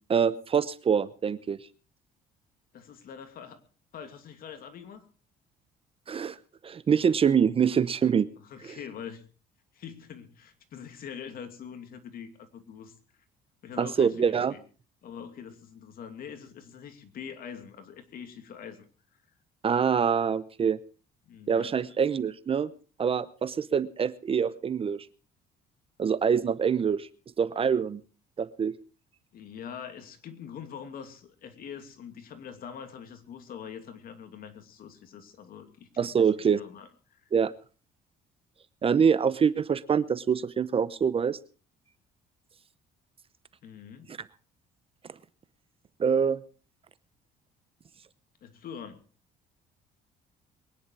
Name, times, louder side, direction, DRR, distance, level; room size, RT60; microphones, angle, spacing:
voice 1, 0.1-1.6 6.1-6.4 6.6-8.3 13.8-14.5 19.6-20.8 21.5-22.7 23.0-25.0 26.0-27.1 27.4-28.0 28.4-28.8 36.0-36.6 37.3-37.5 38.8-41.4 46.0-46.4, right 7 dB, 35° right, 16 dB, 0.8 m, -25 dB
voice 2, 2.7-3.6 3.9-5.0 8.4-9.2 9.7-12.9 13.6-14.6 15.0-18.8 21.3-21.9 29.3-37.3 43.6-44.1 48.4-49.0, left 7 dB, 60° left, 7 dB, 2.7 m, -44 dB
23.0 x 10.0 x 4.7 m, 0.38 s
cardioid pair, 110°, 17 cm